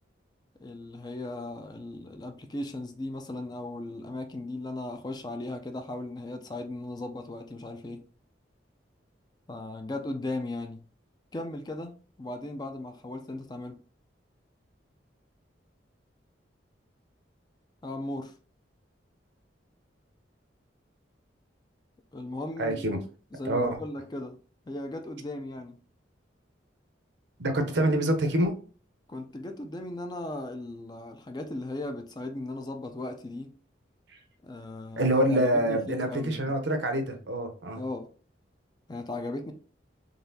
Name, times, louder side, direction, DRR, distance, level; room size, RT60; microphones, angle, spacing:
voice 1, 0.6-8.0 9.5-10.8 11.3-11.9 12.2-13.8 17.8-18.3 22.1-23.0 23.3-24.4 24.7-25.8 29.1-33.5 34.4-36.5 37.8-38.1 38.9-39.5, left 2 dB, 20° left, 0.4 m, -37 dB
voice 2, 22.6-23.0 23.5-23.8 27.4-28.5 35.0-37.8, right 1 dB, 70° right, 0.7 m, -26 dB
3.9 x 3.4 x 2.7 m
head